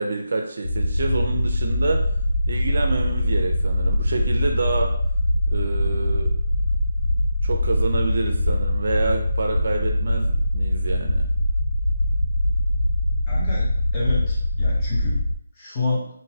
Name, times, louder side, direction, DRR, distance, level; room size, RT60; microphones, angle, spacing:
voice 1, 0.0-2.0 2.5-5.0 5.5-6.3 7.4-11.2, right 3 dB, 55° right, 3 dB, 0.4 m, -27 dB
sound 1, 0.6-15.3, left 1 dB, 75° left, 0.4 m, -22 dB
voice 2, 13.3-15.2 15.6-16.1, left 3 dB, 15° left, -7 dB, 0.9 m, -29 dB
3.8 x 2.5 x 2.8 m, 0.68 s
figure-of-eight pair, 170°, 0 cm